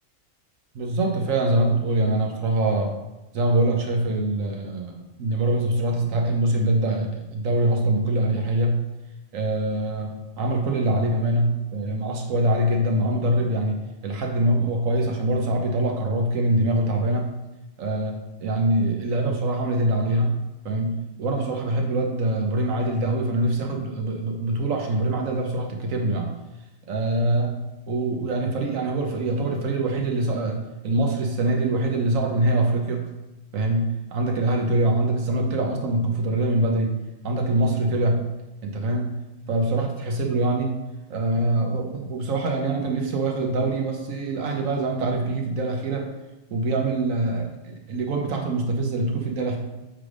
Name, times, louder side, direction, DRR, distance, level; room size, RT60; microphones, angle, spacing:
voice 1, 0.7-3.0 3.3-8.8 9.3-13.8 14.0-17.3 17.8-20.3 20.6-26.3 26.9-27.6 27.9-33.1 33.5-36.9 37.2-38.2 38.6-39.2 39.5-40.7 41.1-46.1 46.5-49.6, right 1 dB, 80° right, 2 dB, 1.3 m, -24 dB
7.4 x 3.4 x 4.9 m, 0.99 s
omnidirectional pair, 1.4 m